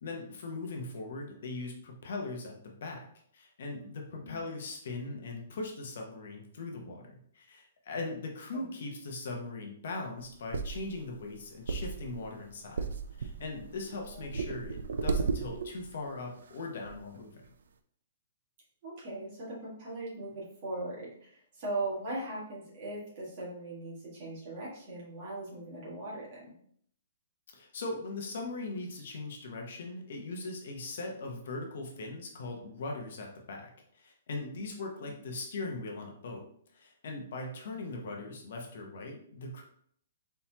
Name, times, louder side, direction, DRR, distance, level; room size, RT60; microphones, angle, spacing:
voice 1, 0.0-3.1 3.3-12.9 13.2-17.4 27.5-36.4 36.7-39.6, left 3 dB, 50° left, 1 dB, 0.9 m, -40 dB
voice 2, 8.5-8.8 14.1-14.2 18.8-26.5 35.0-35.1, right 2 dB, 30° right, -6 dB, 1.8 m, -39 dB
sound 1, 10.2-15.9 16.5-16.6 16.8-17.0, right 4 dB, 75° right, 0.4 m, -35 dB
4.2 x 3.9 x 2.8 m, 0.63 s
hypercardioid pair, 180°, 0 cm